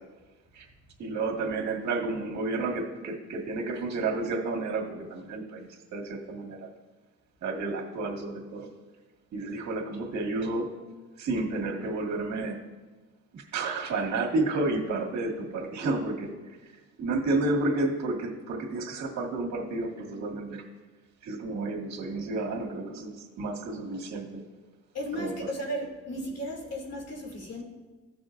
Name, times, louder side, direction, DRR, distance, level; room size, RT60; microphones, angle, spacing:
voice 1, 1.0-6.7 7.4-8.7 9.3-10.7 11.2-12.6 13.3-16.3 17.0-20.6 21.2-24.4 25.1-25.3, right 2 dB, 65° right, 0 dB, 1.9 m, -31 dB
voice 2, 24.9-27.6, equal, 55° left, -1 dB, 2.7 m, -35 dB
15.5 x 6.2 x 2.5 m, 1.3 s
cardioid pair, 90°, 30 cm